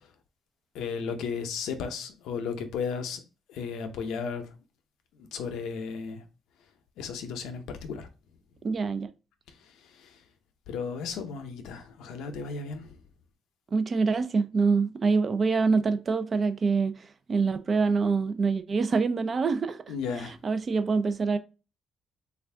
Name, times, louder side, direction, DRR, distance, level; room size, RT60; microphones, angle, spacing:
voice 1, 0.7-3.2 3.5-4.4 5.2-6.2 7.0-8.1 9.8-10.2 10.7-13.0 19.9-20.4, left 5 dB, 90° left, 0.6 m, -34 dB
voice 2, 8.6-9.1 13.7-17.0 17.3-19.8 20.4-21.4, right 4 dB, 45° right, 0.4 m, -25 dB
3.3 x 2.4 x 3.3 m
cardioid pair, 90°, 0 cm